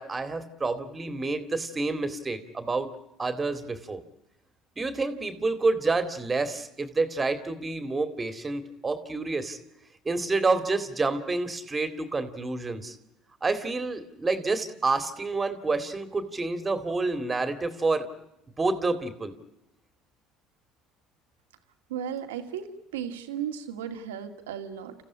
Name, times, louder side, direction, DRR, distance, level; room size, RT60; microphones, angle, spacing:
voice 1, 0.0-2.9 3.2-4.0 4.8-9.6 10.0-13.0 13.4-18.1 18.6-19.3, right 3 dB, 25° right, 10 dB, 2.3 m, -28 dB
voice 2, 21.9-22.7 22.9-24.9, right 9 dB, 90° right, 7 dB, 2.2 m, -35 dB
29.0 x 15.0 x 10.0 m, 0.90 s
hypercardioid pair, 75°, 0 cm